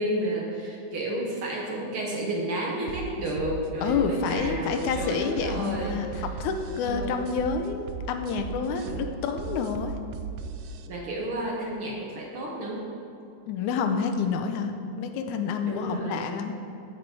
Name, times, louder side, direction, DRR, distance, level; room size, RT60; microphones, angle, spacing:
voice 1, 0.0-6.2 6.8-7.3 8.8-9.0 10.9-12.9 15.6-16.4, right 1 dB, 50° right, -3 dB, 2.0 m, -31 dB
sound 1, 2.9-10.9, right 6 dB, 80° right, 1.6 m, -37 dB
voice 2, 3.8-10.0 13.5-16.5, left 5 dB, 85° left, 6 dB, 2.1 m, -29 dB
14.5 x 6.5 x 4.6 m, 2.9 s
omnidirectional pair, 3.4 m